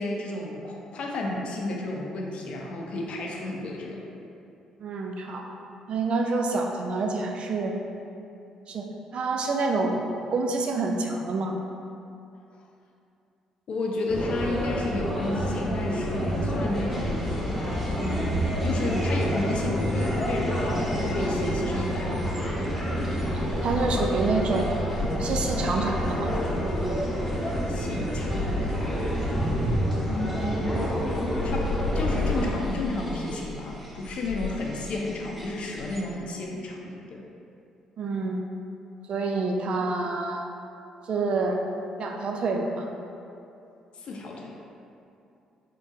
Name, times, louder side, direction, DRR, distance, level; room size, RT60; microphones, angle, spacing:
voice 1, 0.0-4.0 13.7-17.4 18.0-22.2 27.7-28.9 30.1-30.8 31.4-37.2 44.0-44.5, left 2 dB, 55° left, -1 dB, 0.6 m, -32 dB
voice 2, 4.8-5.5 5.9-7.7 8.6-8.8 9.1-11.5 23.0-23.3 23.6-26.3 38.0-38.4 39.1-40.4 41.0-41.6 42.0-42.9, right 3 dB, 55° right, 2 dB, 0.4 m, -27 dB
sound 1, 14.1-32.5, equal, 15° left, 1.0 m, -28 dB
sound 2, 16.9-36.0, left 2 dB, 10° right, 0.8 m, -36 dB
3.8 x 3.7 x 2.6 m, 2.7 s
hypercardioid pair, 50°, 2 cm